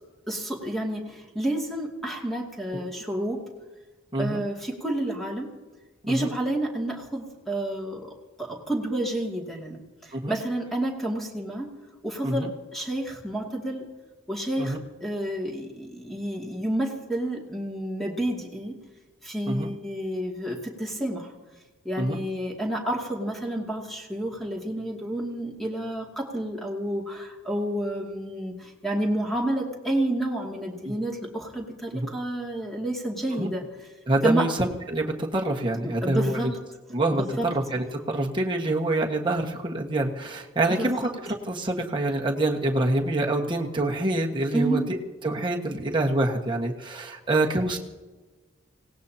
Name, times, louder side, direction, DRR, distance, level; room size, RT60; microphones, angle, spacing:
voice 1, 0.3-3.4 4.1-5.5 6.1-8.0 8.4-9.8 10.0-11.7 12.0-13.9 14.3-18.8 19.2-21.3 21.8-33.6 34.2-34.5 35.8-36.5 37.1-37.5 40.8-41.0 44.5-44.9, right 1 dB, ahead, -1 dB, 2.5 m, -30 dB
voice 2, 34.1-36.5 36.9-45.0 45.2-47.8, right 2 dB, 25° right, 0 dB, 1.5 m, -26 dB
26.0 x 18.0 x 2.9 m, 1.2 s
head